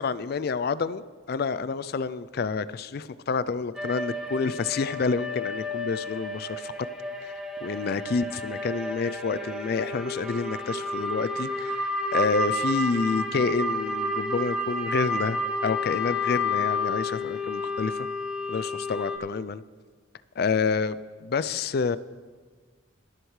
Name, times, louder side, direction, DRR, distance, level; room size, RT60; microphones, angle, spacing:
voice 1, 0.0-6.7 7.2-7.3 7.6-18.1 18.5-19.6 20.4-22.0, left 5 dB, 50° left, 16 dB, 0.3 m, -28 dB
sound 1, 3.8-19.2, left 2 dB, 5° right, 0.6 m, -31 dB
21.5 x 7.9 x 3.2 m, 1.5 s
head